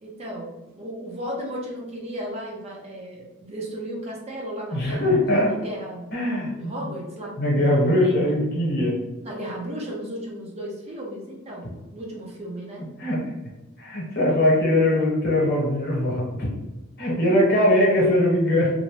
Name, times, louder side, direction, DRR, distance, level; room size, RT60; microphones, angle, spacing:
voice 1, 0.0-5.1 5.4-6.0 6.5-7.8 9.2-12.9, equal, 30° right, -2 dB, 0.5 m, -35 dB
voice 2, 4.7-5.5 6.1-6.5 7.4-9.0 13.0-13.2 13.8-16.5 17.0-18.7, left 1 dB, 50° left, -3 dB, 1.0 m, -21 dB
2.6 x 2.1 x 3.1 m, 1.1 s
head